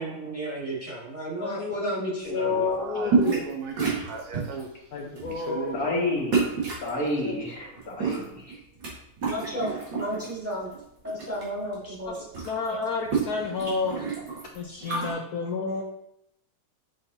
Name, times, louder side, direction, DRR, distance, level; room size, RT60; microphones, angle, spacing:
voice 1, 0.0-2.7 9.2-9.7 10.0-10.7 11.0-12.2, right 1 dB, 5° right, 1.9 m, -33 dB
voice 2, 1.4-3.4 4.9-5.7 12.5-14.1 14.5-15.8, left 4 dB, 80° left, 0.8 m, -30 dB
voice 3, 2.3-6.0, right 5 dB, 80° right, 1.6 m, -36 dB
sound 1, 3.1-3.5 3.8-4.6 5.1-5.4 6.3-6.9 7.8-8.9 9.2-10.3 10.7-11.4 11.7-11.8 12.0-15.1, right 5 dB, 60° right, 2.4 m, -28 dB
voice 4, 5.7-6.5 6.8-8.6, left 1 dB, 45° left, 2.2 m, -29 dB
7.0 x 5.3 x 2.7 m
omnidirectional pair, 2.3 m